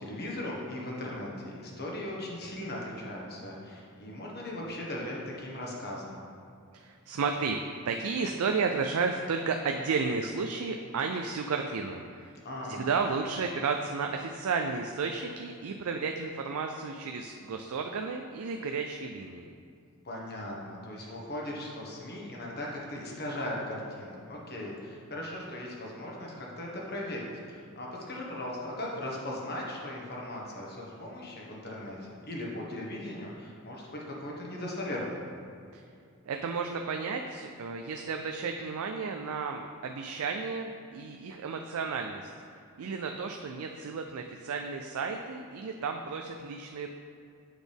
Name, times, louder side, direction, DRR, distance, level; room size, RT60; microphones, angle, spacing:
voice 1, 0.0-6.2 12.4-12.9 20.0-35.2, left 1 dB, 45° left, -3 dB, 1.4 m, -38 dB
voice 2, 6.7-7.6 7.8-12.3 12.7-19.5 35.7-35.8 36.3-42.3 42.8-46.9, right 5 dB, 75° right, 4 dB, 0.4 m, -33 dB
8.0 x 6.1 x 3.5 m, 2.4 s
head